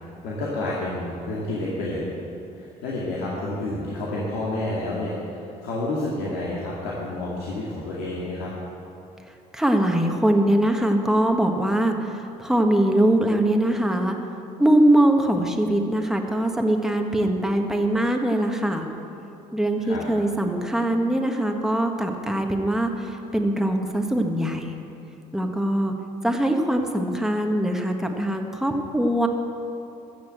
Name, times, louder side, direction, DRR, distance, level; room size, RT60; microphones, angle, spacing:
voice 1, 0.2-2.1 2.6-5.1 5.6-8.5 19.8-20.0, left 2 dB, 85° left, -6 dB, 2.2 m, -29 dB
voice 2, 9.5-14.1 14.6-18.8 19.5-22.9 23.3-24.6 25.3-25.9 26.2-29.3, right 1 dB, 5° right, 3 dB, 1.5 m, -22 dB
14.5 x 6.9 x 8.0 m, 2.8 s
supercardioid pair, 75°, 16 cm